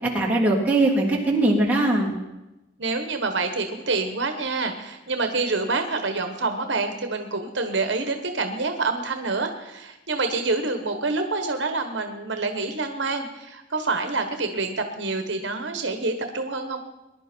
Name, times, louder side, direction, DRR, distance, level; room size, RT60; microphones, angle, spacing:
voice 1, 0.0-2.1, right 2 dB, 10° right, -5 dB, 3.2 m, -21 dB
voice 2, 2.8-16.8, right 3 dB, 70° right, 6 dB, 1.3 m, -27 dB
21.0 x 11.0 x 4.5 m, 0.98 s
head